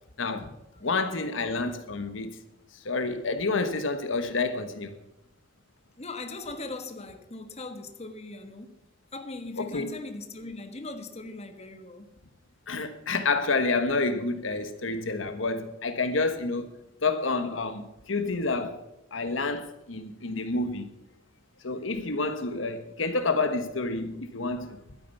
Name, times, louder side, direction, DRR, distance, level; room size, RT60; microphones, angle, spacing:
voice 1, 0.2-0.5 0.8-2.4 2.8-4.9 9.6-9.9 12.7-16.7 17.0-18.8 19.1-20.9 21.6-24.8, left 3 dB, 80° left, 1.3 m, -29 dB
voice 2, 0.7-1.3 6.0-8.8 9.1-12.1, left 2 dB, 35° left, 1.4 m, -40 dB
12.0 x 9.7 x 7.0 m
head